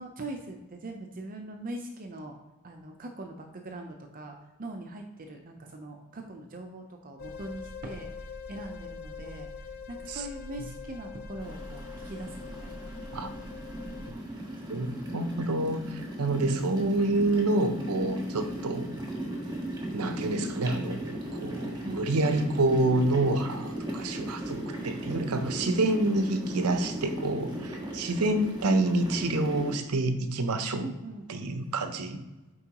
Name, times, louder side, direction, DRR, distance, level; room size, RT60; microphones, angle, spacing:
voice 1, 0.0-2.4 2.6-8.1 8.5-9.5 9.9-12.9 14.4-14.5 28.0-28.1 30.8-31.3, right 2 dB, 40° right, 3 dB, 0.6 m, -41 dB
sound 1, 7.2-14.1, left 4 dB, 45° left, 0.5 m, -42 dB
sound 2, 11.4-29.8, right 1 dB, 20° right, 1.5 m, -37 dB
voice 2, 14.7-15.8 16.2-18.9 19.9-30.9 31.3-32.2, right 2 dB, 75° right, 9 dB, 0.7 m, -28 dB
8.3 x 4.6 x 3.0 m, 1.1 s
head